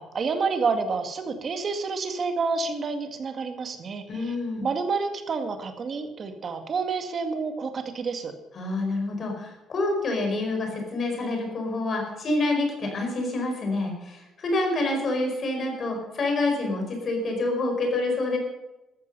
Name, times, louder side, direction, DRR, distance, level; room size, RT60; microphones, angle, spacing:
voice 1, 0.0-4.4 4.6-8.3, right 4 dB, 30° right, 6 dB, 2.0 m, -29 dB
voice 2, 4.1-4.7 8.5-18.4, left 2 dB, 35° left, 2 dB, 5.0 m, -27 dB
14.5 x 13.5 x 5.6 m, 1.1 s
cardioid pair, 175°, 0 cm